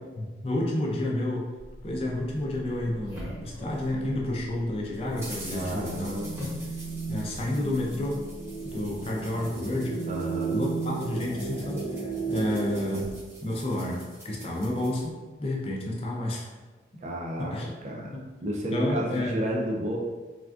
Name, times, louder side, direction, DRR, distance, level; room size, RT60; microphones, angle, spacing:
voice 1, 0.2-1.5 1.8-6.2 7.1-8.2 8.6-10.0 10.5-16.5 17.4-17.7 18.1-18.2 18.7-19.4, left 1 dB, 30° left, -2 dB, 0.4 m, -30 dB
sound 1, 1.6-9.1, equal, 85° right, 0.9 m, -46 dB
sound 2, 2.3-4.2 4.5-15.1, equal, 15° right, 0.8 m, -45 dB
sound 3, 2.9-13.1, right 4 dB, 70° left, 0.7 m, -36 dB
voice 2, 5.5-6.4 10.1-10.6 17.0-18.1 18.4-20.0, right 1 dB, 40° right, -1 dB, 0.4 m, -32 dB
3.5 x 2.2 x 2.3 m, 1.3 s
head